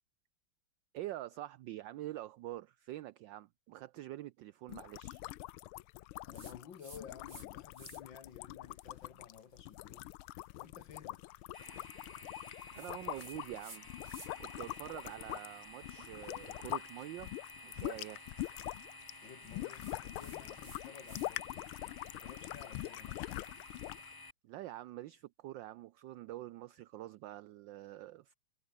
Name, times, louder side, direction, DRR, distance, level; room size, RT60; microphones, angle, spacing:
voice 1, 0.9-5.2 12.7-13.9 14.4-17.3 17.6-18.2 24.4-28.3, right 15 dB, 70° right, 1.2 m, -46 dB
sound 1, 4.7-16.9 17.2-24.1, left 17 dB, 85° left, 1.5 m, -44 dB
voice 2, 6.2-10.1 10.6-11.4 19.2-21.7 22.0-23.2, left 7 dB, 65° left, 2.4 m, -54 dB
sound 2, 6.3-7.5 7.7-8.2 8.8-14.5 14.9-21.3 21.6-23.8, right 2 dB, 45° right, 8.0 m, -59 dB
sound 3, 11.5-24.3, left 3 dB, 30° left, 0.4 m, -53 dB
omnidirectional pair, 2.3 m